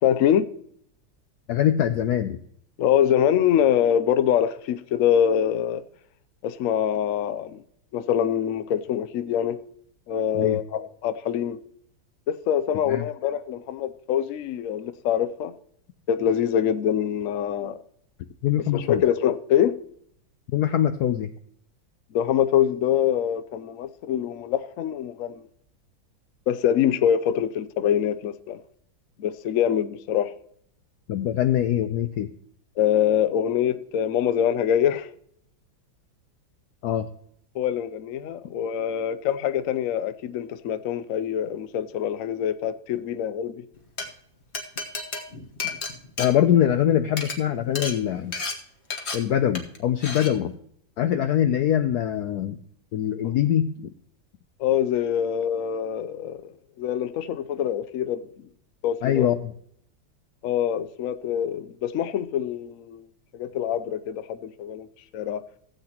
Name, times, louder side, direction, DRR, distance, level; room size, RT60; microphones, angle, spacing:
voice 1, 0.0-0.5 2.8-5.8 6.4-7.6 7.9-9.6 10.1-11.6 12.3-15.5 16.1-17.8 18.7-19.8 22.1-25.4 26.5-28.6 29.2-30.3 32.8-35.1 37.5-43.6 53.2-53.3 54.6-58.2 58.8-59.3 60.4-63.0 63.3-64.9 65.1-65.4, left 9 dB, 85° left, 0.7 m, -24 dB
voice 2, 1.5-2.4 10.3-10.6 12.9-13.0 18.4-19.0 20.5-21.3 31.1-32.3 36.8-37.1 46.2-48.3 49.1-50.6 51.0-52.6 52.9-53.9 59.0-59.5, left 10 dB, 70° left, 1.0 m, -23 dB
Glass, 43.8-44.1 44.5-46.8 47.1-47.4 47.8-47.9 48.3-48.5 48.9-49.2 49.5-49.8 50.0-50.3, left 4 dB, 40° left, 1.4 m, -31 dB
16.0 x 8.2 x 2.9 m
omnidirectional pair, 2.1 m